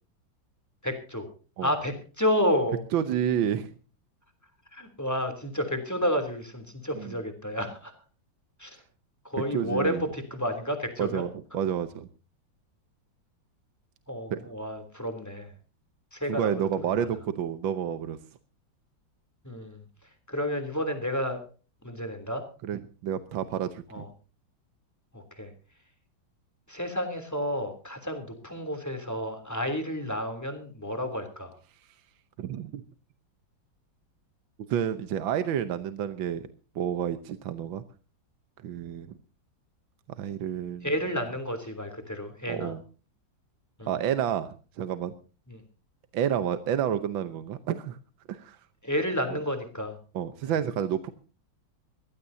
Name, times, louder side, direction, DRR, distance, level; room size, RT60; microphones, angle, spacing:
voice 1, 0.8-1.3 1.6-2.8 4.7-7.9 8.6-8.8 9.2-11.3 14.1-15.5 16.1-16.5 16.8-17.1 19.4-19.8 20.3-21.4 21.8-22.4 23.9-24.1 25.1-25.5 26.7-31.5 40.8-42.7 43.8-43.9 45.5-45.6 48.8-50.0, equal, 10° left, 6 dB, 3.1 m, -31 dB
voice 2, 2.9-3.7 7.0-7.1 9.5-10.0 11.0-12.1 14.3-14.4 16.3-18.2 22.6-24.0 32.4-32.8 34.7-36.4 36.7-37.8 38.6-39.1 40.2-40.9 42.5-42.8 43.9-45.1 46.1-48.0 48.3-48.6 50.1-51.1, right 9 dB, 80° right, 10 dB, 1.7 m, -29 dB
22.5 x 16.0 x 2.8 m, 0.36 s
omnidirectional pair, 2.1 m